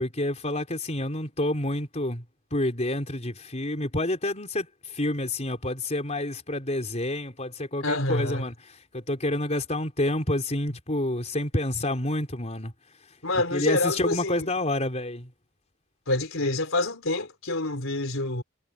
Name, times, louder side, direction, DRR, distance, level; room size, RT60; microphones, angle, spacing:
voice 1, 0.0-2.2 2.5-12.7 13.5-15.3, left 1 dB, 30° left, 4.3 m, -28 dB
voice 2, 7.8-8.4 13.2-14.5 16.1-18.4, left 2 dB, 65° left, 4.5 m, -27 dB
head